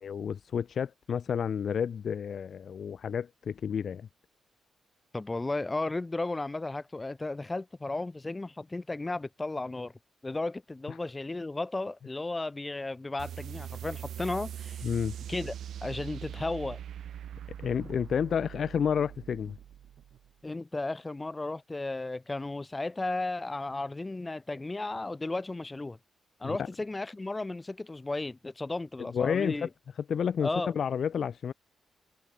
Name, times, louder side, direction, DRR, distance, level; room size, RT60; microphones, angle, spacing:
voice 1, 0.0-4.1 14.8-15.2 17.6-19.6 26.4-26.7 29.0-29.7 30.1-30.5 30.7-31.5, left 7 dB, 60° left, 1.3 m, -30 dB
voice 2, 5.1-9.9 10.2-14.8 15.3-15.5 15.8-16.8 20.4-26.0 26.4-29.7 30.4-30.7, left 2 dB, 20° left, 3.9 m, -34 dB
sound 1, 13.2-20.3, right 10 dB, 80° right, 4.4 m, -42 dB
cardioid pair, 110°, 0 cm